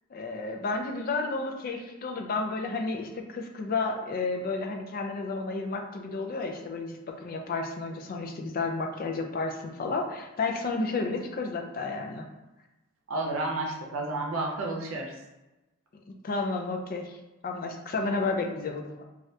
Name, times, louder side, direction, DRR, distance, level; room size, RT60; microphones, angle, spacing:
voice 1, 0.1-12.3 16.1-19.0, left 3 dB, 45° left, 3 dB, 0.4 m, -32 dB
voice 2, 13.1-15.1, right 2 dB, 75° right, 0 dB, 0.6 m, -31 dB
2.7 x 2.4 x 3.2 m, 1.0 s
head